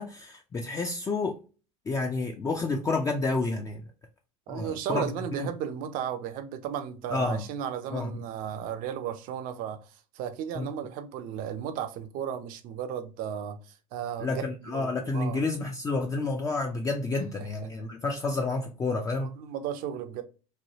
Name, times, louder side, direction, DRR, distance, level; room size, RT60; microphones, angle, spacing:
voice 1, 0.0-1.4 1.9-3.9 4.5-5.1 5.4-5.5 7.1-7.5 7.9-8.2 10.5-10.7 14.2-19.4, left 3 dB, 20° left, 0.4 m, -30 dB
voice 2, 4.5-15.4 17.6-17.7 19.2-20.2, right 9 dB, 50° right, 0.6 m, -35 dB
3.1 x 2.2 x 2.8 m
hypercardioid pair, 80°, 18 cm